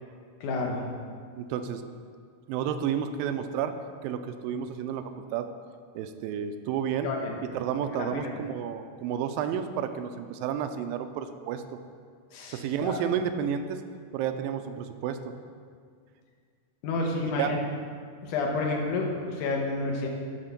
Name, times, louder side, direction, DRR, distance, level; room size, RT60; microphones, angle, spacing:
voice 1, 0.4-0.8 7.0-7.4 7.9-8.2 12.3-13.0 16.8-17.6 18.2-20.1, left 3 dB, 70° left, 0 dB, 2.4 m, -30 dB
voice 2, 1.4-1.8 2.5-3.7 4.0-5.5 6.0-7.1 7.5-11.6 12.5-13.8 14.1-15.3 17.4-17.5, right 8 dB, 85° right, 8 dB, 2.3 m, -31 dB
12.5 x 4.4 x 5.8 m, 2.1 s
omnidirectional pair, 4.0 m